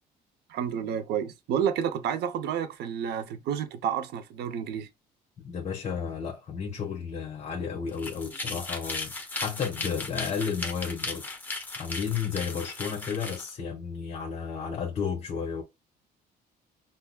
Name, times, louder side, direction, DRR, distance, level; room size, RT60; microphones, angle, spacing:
voice 1, 0.5-4.9, right 8 dB, 75° right, 0.6 m, -30 dB
voice 2, 5.4-11.3 11.8-15.6, left 6 dB, 40° left, 1.0 m, -32 dB
sound 1, 7.9-13.5, left 3 dB, 10° left, 1.0 m, -36 dB
5.8 x 2.0 x 2.3 m
cardioid pair, 110°, 17 cm